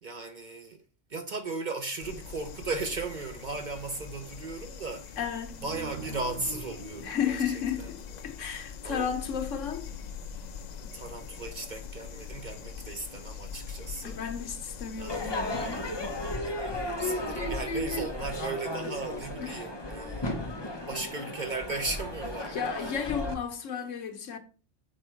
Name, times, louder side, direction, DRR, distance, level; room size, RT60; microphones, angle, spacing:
voice 1, 0.0-0.8 1.1-5.2 5.6-7.9 8.8-9.1 10.9-14.2 15.0-15.6 16.4-23.0, right 3 dB, 50° right, 0.6 m, -37 dB
sound 1, 2.0-16.4, left 6 dB, 60° left, 0.4 m, -43 dB
voice 2, 5.2-5.6 7.0-9.9 14.0-15.9 19.4-19.7 22.5-24.4, left 7 dB, 80° left, 1.4 m, -33 dB
sound 2, 5.6-8.8, right 2 dB, 80° right, 4.4 m, -42 dB
Crowd / Fireworks, 15.1-23.3, left 1 dB, 25° left, 0.9 m, -34 dB
6.6 x 4.3 x 4.4 m
omnidirectional pair, 1.3 m